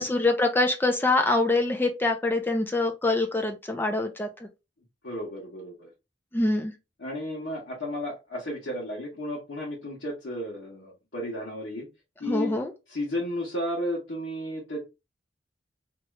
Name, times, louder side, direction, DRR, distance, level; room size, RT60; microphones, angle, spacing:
voice 1, 0.0-4.5 6.3-6.7 12.3-12.7, left 2 dB, 10° left, 0.4 m, -25 dB
voice 2, 5.0-5.9 7.0-11.9 12.2-12.6 12.9-14.8, left 1 dB, 85° left, 1.2 m, -33 dB
2.9 x 2.4 x 3.1 m
head